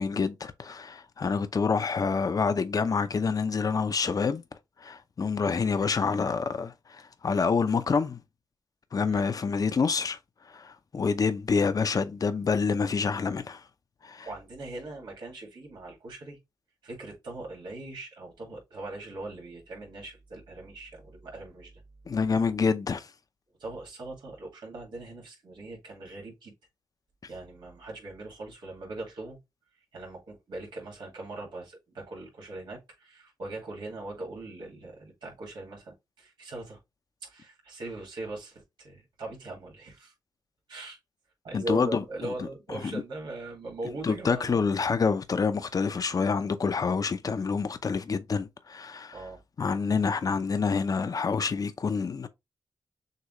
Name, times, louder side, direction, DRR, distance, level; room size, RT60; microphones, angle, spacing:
voice 1, 0.0-4.4 4.8-8.2 8.9-10.2 10.5-13.6 14.0-14.3 22.1-23.1 41.5-42.3 42.8-42.9 44.0-49.2 49.6-52.3, left 5 dB, 55° left, 0.6 m, -27 dB
voice 2, 14.2-16.4 16.8-21.7 23.6-26.5 27.3-29.4 29.9-36.8 37.2-40.1 40.7-41.0 41.4-44.6 49.1-49.4, right 2 dB, 85° right, 2.1 m, -40 dB
6.6 x 2.4 x 3.1 m
cardioid pair, 60°, 8 cm